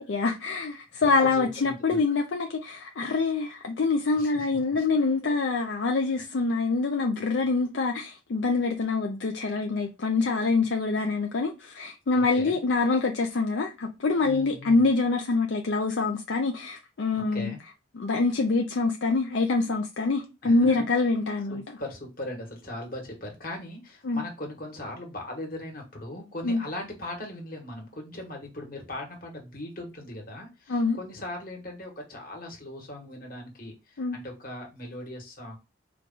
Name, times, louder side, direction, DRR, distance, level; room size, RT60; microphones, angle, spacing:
voice 1, 0.0-17.5 18.0-21.6 24.0-24.2 26.4-26.6 30.7-31.0 34.0-34.2, left 3 dB, 70° left, 0.5 m, -25 dB
voice 2, 1.2-2.0 4.1-4.9 5.2-5.3 12.1-12.6 14.2-14.9 17.3-17.6 20.4-20.7 21.5-35.6, left 1 dB, 50° left, 1.4 m, -39 dB
4.5 x 2.4 x 3.8 m
head